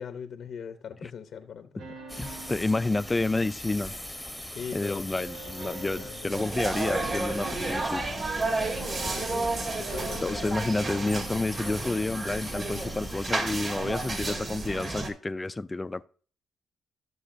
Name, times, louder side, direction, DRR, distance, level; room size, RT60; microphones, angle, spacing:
voice 1, 0.0-2.4 4.5-5.1 5.6-6.3 9.0-9.5 9.8-10.7, left 7 dB, 65° left, 0.6 m, -41 dB
sound 1, 1.8-4.5 5.1-8.2 8.5-11.8, right 4 dB, 80° right, 2.0 m, -46 dB
sound 2, 2.1-14.3, left 1 dB, ahead, 0.9 m, -41 dB
voice 2, 2.2-3.9 4.7-8.0 10.1-16.1, left 2 dB, 20° left, 0.3 m, -30 dB
sound 3, 6.3-15.1, right 2 dB, 40° right, 2.0 m, -32 dB
14.5 x 6.4 x 2.6 m
cardioid pair, 90°, 0 cm